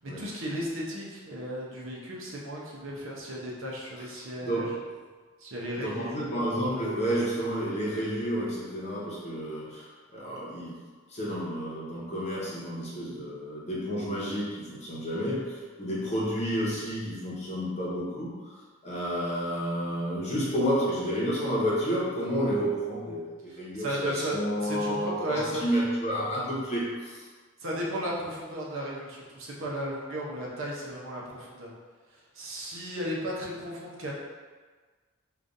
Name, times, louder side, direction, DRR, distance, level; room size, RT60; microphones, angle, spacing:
voice 1, 0.0-4.7 5.4-6.2 23.5-24.3 24.6-25.6 27.6-31.7 32.1-34.1, equal, 65° right, -4 dB, 0.8 m, -35 dB
voice 2, 5.7-10.8 11.1-18.5 18.8-27.2, equal, 30° left, -7 dB, 0.9 m, -30 dB
4.9 x 2.4 x 2.6 m, 1.4 s
head